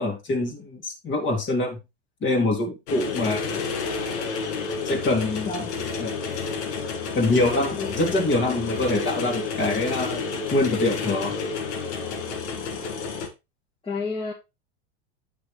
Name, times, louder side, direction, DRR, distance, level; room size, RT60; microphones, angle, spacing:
voice 1, 0.0-1.8 2.2-3.6 4.8-5.5 6.0-6.1 7.1-10.2 10.5-11.3, left 2 dB, 35° left, 3 dB, 2.8 m, -24 dB
sound 1, 2.9-13.3, left 4 dB, 75° left, 1.9 m, -30 dB
voice 2, 5.4-5.8 7.8-8.0 13.8-14.3, left 3 dB, 15° left, -3 dB, 1.8 m, -30 dB
8.8 x 6.0 x 3.3 m, 0.24 s
hypercardioid pair, 110°, 34 cm